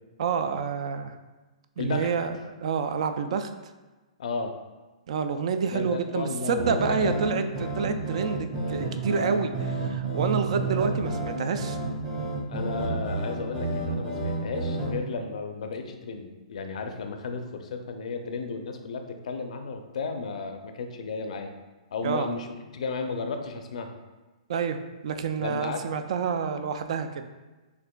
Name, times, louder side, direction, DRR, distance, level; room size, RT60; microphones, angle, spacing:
voice 1, 0.2-1.2 1.8-3.5 5.1-11.8 22.0-22.3 24.5-24.8 25.0-27.3, right 6 dB, 60° right, 8 dB, 0.3 m, -28 dB
voice 2, 1.8-2.1 4.2-4.6 5.7-7.2 12.5-21.5 21.9-22.5 22.7-23.9 25.4-25.8, left 4 dB, 70° left, 6 dB, 0.4 m, -33 dB
sound 1, 6.6-14.9, right 2 dB, 25° right, 1.1 m, -30 dB
6.4 x 2.5 x 2.2 m, 1.2 s
hypercardioid pair, 145°, 4 cm